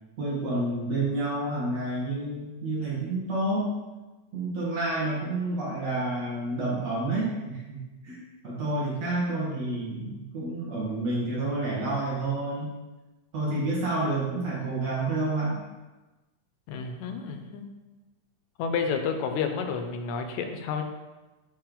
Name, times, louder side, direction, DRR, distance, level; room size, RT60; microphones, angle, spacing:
voice 1, 0.2-3.7 4.3-12.7 13.3-15.6, right 2 dB, 60° right, -7 dB, 2.9 m, -29 dB
voice 2, 16.7-17.8 18.6-20.8, left 6 dB, 80° left, 6 dB, 2.0 m, -30 dB
8.6 x 3.3 x 3.9 m, 1.1 s
omnidirectional pair, 3.4 m